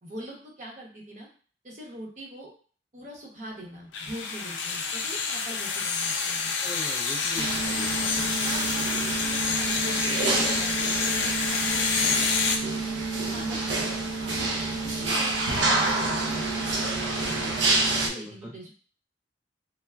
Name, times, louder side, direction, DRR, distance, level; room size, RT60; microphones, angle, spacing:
voice 1, 0.0-1.3 1.6-2.5 2.9-6.6 8.4-12.3 12.9-14.4 14.8-16.6 17.3-18.7, right 1 dB, 45° right, -1 dB, 0.8 m, -43 dB
sound 1, 3.9-12.6, left 5 dB, 80° left, 0.4 m, -28 dB
voice 2, 6.6-8.3 8.9-9.0 13.3-13.6 18.0-18.6, left 1 dB, 5° right, -3 dB, 0.3 m, -42 dB
sound 2, 7.4-18.1, right 3 dB, 75° right, 0.5 m, -28 dB
3.3 x 2.0 x 2.3 m, 0.41 s
head